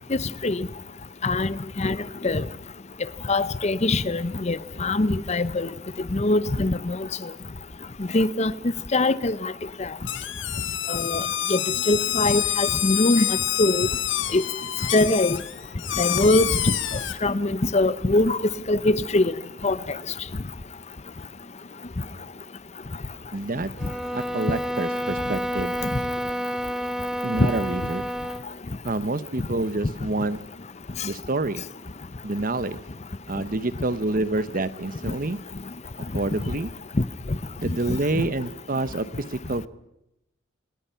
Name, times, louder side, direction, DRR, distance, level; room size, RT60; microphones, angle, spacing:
voice 1, 1.2-2.0 2.2-2.4 3.3-5.7 6.1-7.3 8.1-8.5 8.9-9.5 9.8-9.9 10.9-11.2 11.5-11.6 11.9-13.9 14.3-14.4 14.9-15.4 16.0-16.7 17.2-18.4 18.7-19.3 19.6-20.0 25.9-26.0, left 2 dB, 35° left, 0.7 m, -22 dB
sound 1, 10.1-17.2, left 12 dB, 65° left, 1.3 m, -27 dB
voice 2, 23.3-23.7 24.1-25.7 27.2-28.0 28.8-30.4 31.0-31.6 32.2-32.8 33.3-35.4 36.1-36.7 37.6-39.7, right 2 dB, 45° right, 1.0 m, -27 dB
sound 2, 23.8-28.5, equal, 5° right, 0.7 m, -29 dB
27.5 x 19.5 x 5.8 m
head